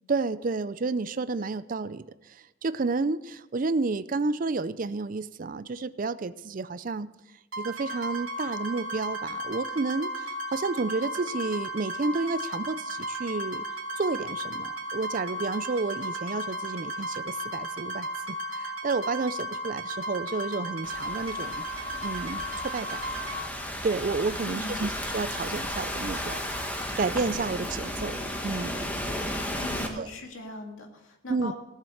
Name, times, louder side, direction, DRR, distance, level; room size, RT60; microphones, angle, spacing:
voice 1, 0.1-7.1 7.6-13.6 14.0-21.6 22.0-23.0 23.8-28.9 29.9-30.1 31.3-31.5, right 3 dB, 40° right, 15 dB, 0.4 m, -31 dB
sound 1, 7.5-23.4, equal, 90° right, 2.4 m, -35 dB
Thunderstorm / Rain, 20.8-29.9, left 1 dB, 10° left, 1.4 m, -34 dB
voice 2, 24.4-24.8 29.6-31.6, left 1 dB, 85° left, 2 dB, 2.3 m, -40 dB
16.5 x 7.4 x 6.4 m, 0.99 s
head